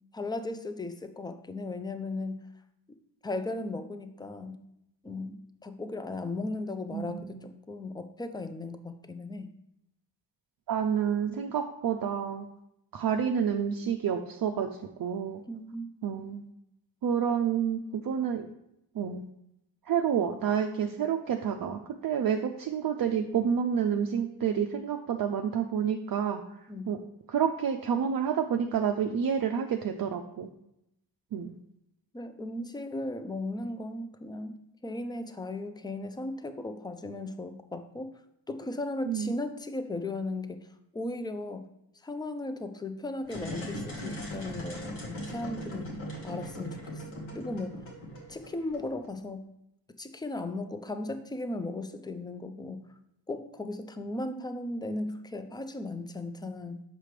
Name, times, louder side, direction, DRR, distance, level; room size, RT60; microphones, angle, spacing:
voice 1, 0.1-2.4 3.2-4.6 5.0-9.5 15.5-15.9 26.7-26.9 32.1-38.1 38.5-40.7 40.9-41.7 42.0-45.9 46.2-47.0 47.3-47.8 48.3-49.4 50.0-52.8 53.3-56.8, left 2 dB, 10° left, 9 dB, 0.4 m, -36 dB
voice 2, 6.9-7.5 10.7-12.5 12.9-15.4 16.0-16.4 17.0-18.5 18.9-19.2 19.9-26.4 26.9-27.0 27.3-30.5 31.3-31.5 39.1-39.3, right 8 dB, 50° right, 4 dB, 0.5 m, -29 dB
sound 1, 43.2-49.1, equal, 85° left, 1.7 m, -39 dB
6.7 x 5.0 x 3.2 m, 0.81 s
cardioid pair, 95°, 46 cm